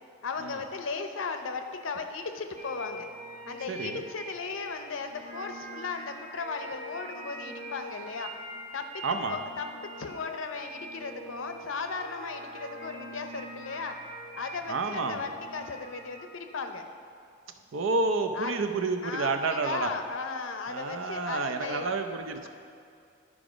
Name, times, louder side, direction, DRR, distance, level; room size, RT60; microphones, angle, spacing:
voice 1, 0.2-3.1 3.5-8.3 8.7-9.0 9.3-9.7 10.0-14.0 14.4-16.8 18.4-18.5 19.0-21.8, left 4 dB, 85° left, 7 dB, 0.6 m, -36 dB
sound 1, 2.6-16.4, right 1 dB, 35° right, 1.2 m, -44 dB
voice 2, 3.7-4.0 9.0-9.4 14.7-15.3 17.7-19.9 20.7-22.5, right 3 dB, 85° right, 6 dB, 0.6 m, -29 dB
11.0 x 4.9 x 5.0 m, 2.4 s
head